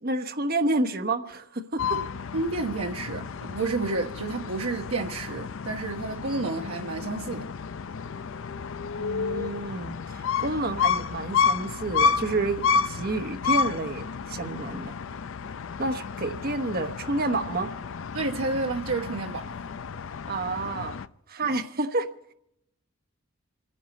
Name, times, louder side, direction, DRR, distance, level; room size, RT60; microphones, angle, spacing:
voice 1, 0.0-1.8 9.0-14.9 15.8-17.7 20.3-20.9 21.3-22.1, right 2 dB, 45° right, 1.1 m, -29 dB
sound 1, 1.8-21.1, left 6 dB, 65° left, 0.5 m, -31 dB
voice 2, 2.3-7.5 18.1-19.5 21.4-21.6, right 3 dB, 75° right, 1.1 m, -30 dB
28.5 x 10.0 x 4.2 m
head